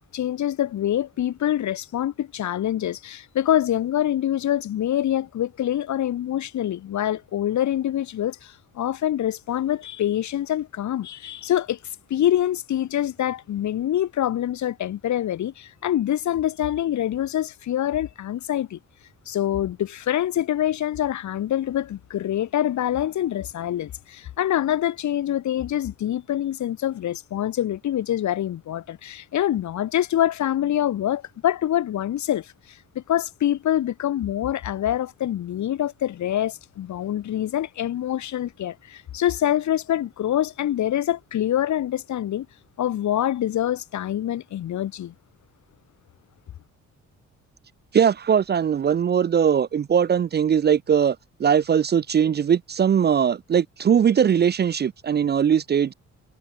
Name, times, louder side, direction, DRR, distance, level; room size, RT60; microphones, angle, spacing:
voice 1, 0.1-11.8 12.1-18.8 19.3-42.5 42.8-45.1, left 11 dB, 70° left, 2.6 m, -25 dB
voice 2, 47.9-55.9, right 8 dB, 35° right, 0.5 m, -20 dB
cardioid pair, 90°, 30 cm